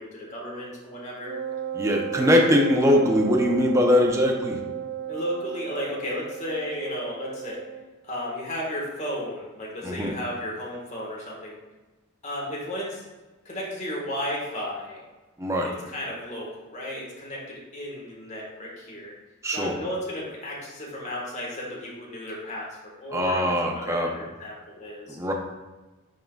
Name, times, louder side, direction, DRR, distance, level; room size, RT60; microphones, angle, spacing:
voice 1, 0.0-1.3 5.1-7.6 8.0-11.6 12.2-13.0 13.4-15.0 15.6-19.1 19.5-25.2, left 1 dB, 35° left, -3 dB, 1.5 m, -34 dB
Wind instrument woodwind instrument, 1.3-7.9, right 9 dB, 50° right, 0.3 m, -34 dB
voice 2, 1.8-4.6 9.8-10.1 15.4-15.7 19.4-19.7 23.1-24.1 25.1-25.3, left 1 dB, 15° right, 1 dB, 0.7 m, -21 dB
10.5 x 3.8 x 2.3 m, 1.2 s
head